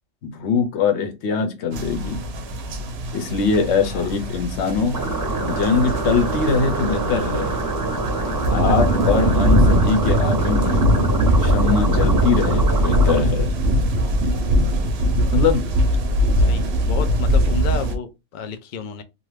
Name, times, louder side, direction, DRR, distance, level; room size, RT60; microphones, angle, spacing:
voice 1, 0.2-2.2 3.1-5.0 5.4-7.5 8.5-11.0 11.4-13.5 15.3-15.6, left 5 dB, 60° left, 1.0 m, -22 dB
sound 1, 1.7-18.0, equal, 60° right, 0.7 m, -21 dB
sound 2, 4.9-13.2, right 2 dB, 20° right, 0.6 m, -26 dB
voice 2, 16.5-19.0, left 6 dB, 85° left, 0.4 m, -32 dB
2.6 x 2.3 x 3.2 m
omnidirectional pair, 1.4 m